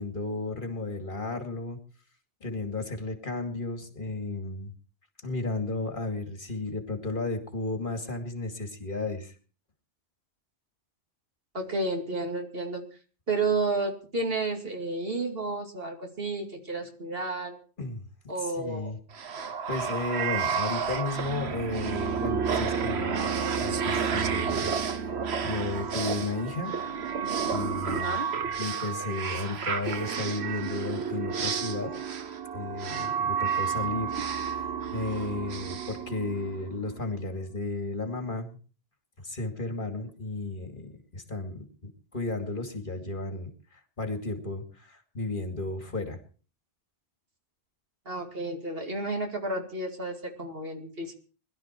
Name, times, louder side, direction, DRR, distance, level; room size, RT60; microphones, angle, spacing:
voice 1, 0.0-1.8 2.4-4.7 5.2-9.4 17.8-18.0 18.4-19.0 19.7-23.2 23.6-26.8 27.5-28.2 28.6-31.9 32.5-38.6 39.2-46.2, left 3 dB, 55° left, 5 dB, 2.6 m, -34 dB
voice 2, 11.5-12.8 13.3-17.6 18.3-18.9 27.8-28.3 48.1-51.1, right 3 dB, 65° right, 3 dB, 2.7 m, -31 dB
sound 1, 19.1-36.8, right 6 dB, 90° right, 1.2 m, -31 dB
21.0 x 12.0 x 4.5 m, 0.39 s
omnidirectional pair, 1.1 m